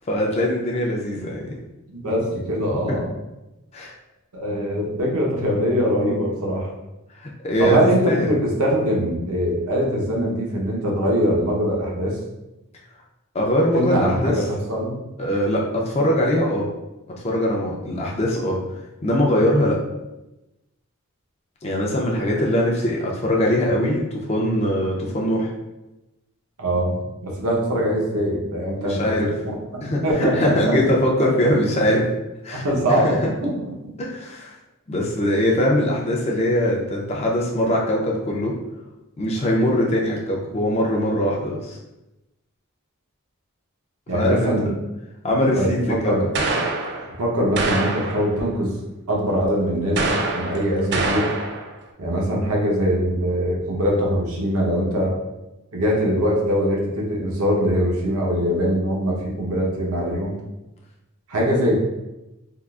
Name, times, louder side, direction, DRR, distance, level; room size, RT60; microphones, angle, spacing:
voice 1, 0.1-1.5 2.9-3.0 3.7-3.9 7.2-7.8 8.1-8.3 13.3-14.4 15.2-16.7 17.2-18.6 19.0-19.8 21.6-25.5 28.8-29.3 29.8-32.1 32.4-33.1 34.0-34.5 34.9-38.5 39.2-41.8 44.1-44.5 45.2-46.1, left 1 dB, 30° left, -2 dB, 0.4 m, -22 dB
voice 2, 1.9-3.1 4.3-6.7 7.6-12.2 13.7-15.0 26.6-29.2 29.4-30.7 32.5-33.5 44.1-44.7 45.5-46.3 47.2-48.7 49.1-50.1 50.3-51.3 52.0-55.2 55.7-60.4 61.3-61.8, equal, 80° right, -2 dB, 0.8 m, -22 dB
sound 1, 46.3-47.2 47.6-48.4 50.0-51.7, right 3 dB, 50° right, 0.3 m, -25 dB
3.6 x 2.4 x 2.3 m, 0.97 s
head